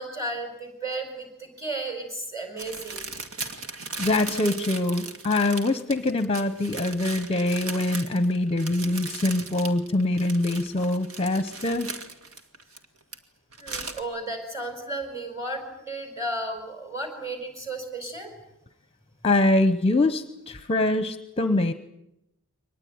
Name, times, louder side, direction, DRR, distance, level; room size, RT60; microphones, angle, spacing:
voice 1, 0.0-3.1 13.6-18.3, right 2 dB, 15° right, 5 dB, 5.0 m, -34 dB
sound 1, 2.6-13.1 13.5-14.0, right 4 dB, 70° right, 2.2 m, -37 dB
voice 2, 4.0-11.9 19.2-21.7, left 2 dB, 25° left, 11 dB, 0.9 m, -24 dB
23.5 x 19.5 x 9.5 m, 0.84 s
head